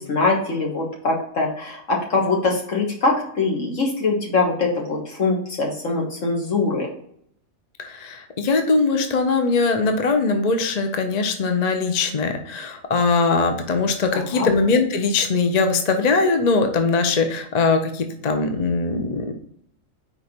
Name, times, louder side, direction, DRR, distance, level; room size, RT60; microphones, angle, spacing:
voice 1, 0.0-6.9 14.1-14.5, left 3 dB, 70° left, -1 dB, 1.9 m, -23 dB
voice 2, 7.8-19.3, left 4 dB, 40° left, 5 dB, 0.7 m, -21 dB
5.0 x 4.8 x 4.3 m, 0.67 s
omnidirectional pair, 1.4 m